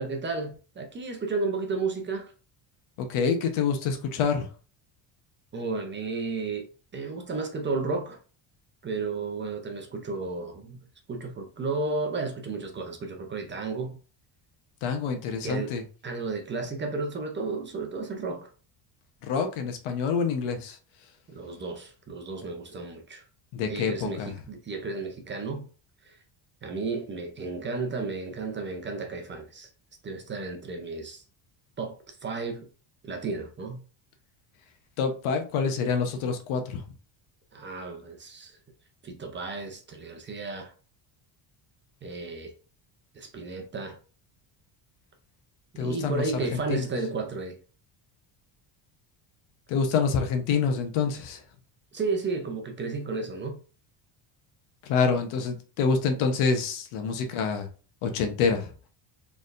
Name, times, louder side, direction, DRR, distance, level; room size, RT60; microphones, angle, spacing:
voice 1, 0.0-2.3 5.5-6.7 6.9-8.2 8.8-10.8 11.1-14.0 15.4-15.7 16.0-18.5 21.3-23.2 23.7-25.7 26.0-26.2 26.6-29.7 30.0-31.2 31.8-32.7 33.0-33.8 37.5-38.6 39.0-40.7 42.0-42.5 43.1-44.0 45.7-47.6 51.9-53.6, right 3 dB, 25° right, 0.6 m, -33 dB
voice 2, 3.0-4.5 14.8-15.8 19.2-20.8 23.5-24.3 35.0-36.9 45.8-46.9 49.7-51.4 54.8-57.7 58.0-58.7, left 5 dB, 80° left, 1.0 m, -27 dB
4.2 x 3.5 x 2.5 m
cardioid pair, 150°, 49 cm